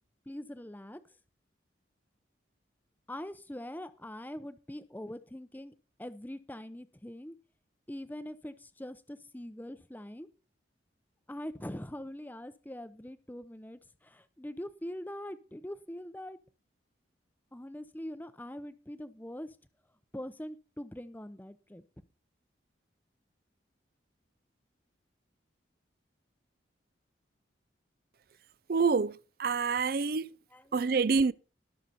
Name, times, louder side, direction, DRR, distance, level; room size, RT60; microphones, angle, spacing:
voice 1, 0.3-1.0 3.1-5.7 6.0-7.3 7.9-10.3 11.3-16.4 17.5-19.6 20.1-22.0 30.5-30.8, left 1 dB, 10° left, 0.7 m, -43 dB
voice 2, 28.7-29.1 29.4-30.3 30.7-31.3, right 5 dB, 50° right, 0.5 m, -27 dB
19.5 x 6.7 x 4.2 m
head